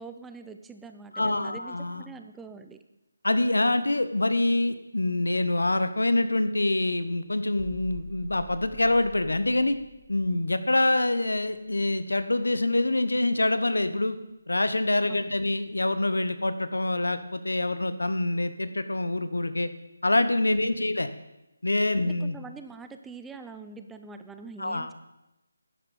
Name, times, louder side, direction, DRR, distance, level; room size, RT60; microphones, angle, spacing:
voice 1, 0.0-2.8 15.1-15.3 22.0-24.9, right 4 dB, 5° right, 8 dB, 0.4 m, -44 dB
voice 2, 1.1-2.0 3.2-9.8 10.1-14.2 14.5-19.7 20.0-21.1 21.6-22.4 24.6-24.9, left 2 dB, 75° left, 11 dB, 0.9 m, -25 dB
sound 1, 7.6-13.3 13.5-13.8, right 3 dB, 25° right, 1.8 m, -47 dB
11.0 x 10.0 x 4.2 m, 0.95 s
figure-of-eight pair, 155°, 0 cm